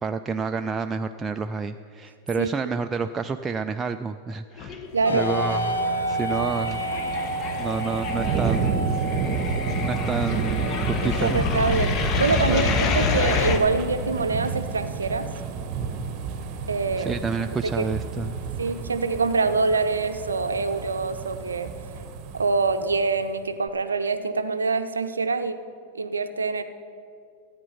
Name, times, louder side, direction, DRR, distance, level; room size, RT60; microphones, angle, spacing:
voice 1, 0.0-4.8 5.1-5.8 6.1-6.8 7.6-8.9 9.8-11.4 12.5-12.7 17.0-18.4, right 5 dB, 15° right, 7 dB, 0.3 m, -29 dB
sound 1, 4.6-5.3 5.5-13.6, left 5 dB, 35° left, 0.9 m, -28 dB
voice 2, 4.9-5.3 9.4-9.5 11.0-15.3 16.7-17.1 17.8-17.9 18.6-21.7 22.3-25.6 25.9-26.6, right 4 dB, 75° right, 10 dB, 0.6 m, -25 dB
sound 2, 5.0-18.7, right 1 dB, 75° left, 0.8 m, -33 dB
sound 3, 5.1-23.2 23.7-23.8, right 6 dB, 40° right, 0.9 m, -31 dB
13.5 x 8.9 x 5.5 m, 2.5 s
figure-of-eight pair, 90°, 0 cm